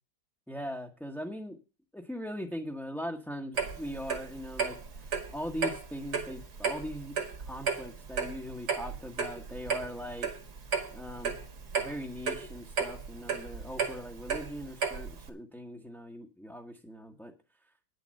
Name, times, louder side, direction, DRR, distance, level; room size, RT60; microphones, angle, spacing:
voice 1, 0.5-1.6 1.9-10.3 10.9-11.4 11.8-17.3, equal, ahead, 0 dB, 0.8 m, -40 dB
Clock, 3.6-15.3, right 6 dB, 60° right, 2.3 m, -34 dB
10.0 x 6.9 x 7.6 m, 0.31 s
omnidirectional pair, 2.0 m